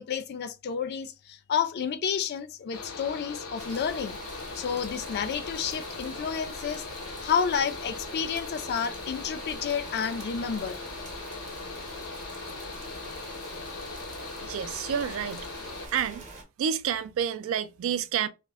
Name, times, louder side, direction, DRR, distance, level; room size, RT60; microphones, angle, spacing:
voice 1, 0.0-4.2 4.5-6.8 7.2-10.8, left 7 dB, 50° left, 0.3 m, -30 dB
Mechanical fan, 2.7-15.9, left 4 dB, 90° left, 0.7 m, -40 dB
sound 1, 3.6-16.4, right 2 dB, 35° right, 0.7 m, -44 dB
voice 2, 14.4-15.5 15.9-16.2 16.6-18.3, right 8 dB, 65° right, 0.3 m, -29 dB
2.1 x 2.0 x 3.4 m
head